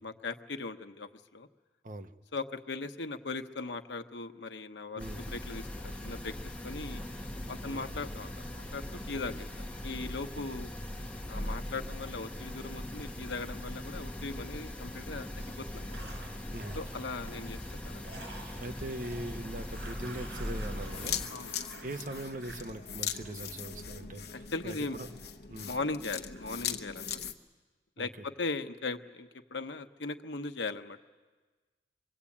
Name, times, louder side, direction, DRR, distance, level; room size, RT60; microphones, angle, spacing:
voice 1, 0.0-1.5 2.3-7.0 7.5-9.5 9.8-10.7 11.3-15.3 15.6-16.0 16.7-18.1 21.3-21.5 24.3-25.0 25.7-27.2 28.0-31.0, left 3 dB, 85° left, 8 dB, 1.1 m, -39 dB
sound 1, 5.0-21.3, left 1 dB, 10° left, 1.9 m, -40 dB
voice 2, 7.6-8.0 9.1-9.2 16.5-16.7 18.6-21.2 21.8-25.1 25.5-25.7 28.0-28.1, right 1 dB, 45° right, 8 dB, 1.1 m, -41 dB
sound 2, 14.3-14.9 15.2-23.9 24.8-25.9 26.3-26.7, right 2 dB, 85° right, 4.8 m, -51 dB
sound 3, 20.9-27.3, left 8 dB, 60° left, 1.1 m, -39 dB
24.5 x 22.5 x 8.6 m, 1.4 s
head